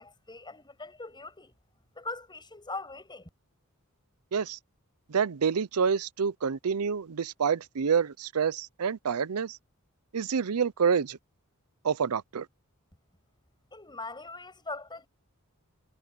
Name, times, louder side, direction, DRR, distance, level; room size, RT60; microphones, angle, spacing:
voice 1, 0.0-1.5 2.0-3.3 13.7-15.1, left 3 dB, 20° left, 7.6 m, -41 dB
voice 2, 5.1-9.6 10.1-11.2 11.8-12.5, right 6 dB, 80° right, 0.6 m, -27 dB
head